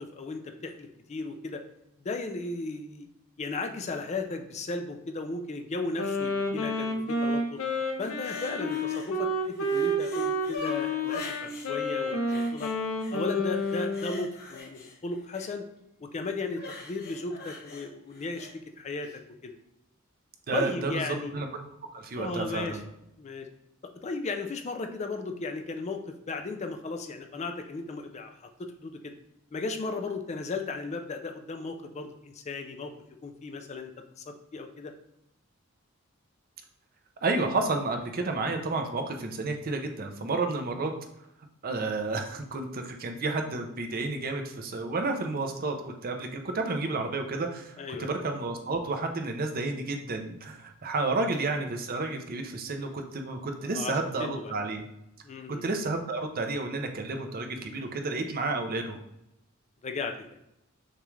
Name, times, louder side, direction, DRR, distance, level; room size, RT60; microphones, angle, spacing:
voice 1, 0.0-1.6 2.0-3.1 3.4-7.6 8.0-12.7 13.1-15.7 16.0-19.6 20.5-21.4 22.2-22.8 23.2-23.5 24.0-29.1 29.5-32.9 33.2-33.9 34.2-34.9 47.8-48.1 51.0-51.1 53.7-54.5 55.2-55.6 59.8-60.4, left 3 dB, 35° left, 5 dB, 0.4 m, -35 dB
Wind instrument woodwind instrument, 6.0-14.2, left 1 dB, 85° left, 0.7 m, -30 dB
sound 1, 8.0-9.1 9.4-11.7 12.3-13.2 13.5-15.5 16.5-18.5 19.0-19.2, left 3 dB, 50° left, 1.0 m, -43 dB
voice 2, 20.5-20.9 21.3-21.5 21.9-22.8 37.2-40.9 41.6-54.8 55.6-59.0, right 3 dB, 45° right, 5 dB, 0.6 m, -31 dB
6.5 x 2.4 x 3.2 m, 0.84 s
head